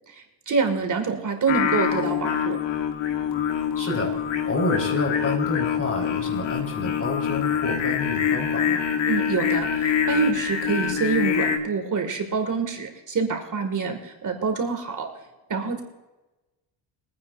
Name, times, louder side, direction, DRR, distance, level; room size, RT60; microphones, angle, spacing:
voice 1, 0.1-2.6 9.1-15.1 15.5-15.8, right 5 dB, 45° right, 5 dB, 2.0 m, -26 dB
Singing, 1.5-11.6, left 8 dB, 75° left, 2.0 m, -25 dB
voice 2, 3.8-4.1 4.4-8.9, left 2 dB, 30° left, 3 dB, 4.1 m, -29 dB
22.5 x 9.6 x 2.5 m, 1.1 s
cardioid pair, 95°, 45 cm